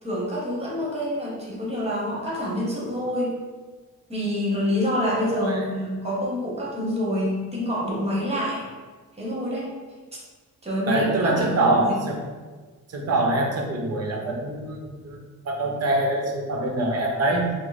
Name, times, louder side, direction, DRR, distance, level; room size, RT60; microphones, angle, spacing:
voice 1, 0.0-3.3 4.1-8.6 9.2-9.7 10.6-12.0, equal, 20° right, -5 dB, 1.0 m, -27 dB
voice 2, 5.1-5.6 10.9-12.2 12.9-17.5, right 2 dB, 50° right, 1 dB, 0.7 m, -24 dB
4.9 x 2.0 x 4.1 m, 1.4 s
wide cardioid pair, 175°, 33 cm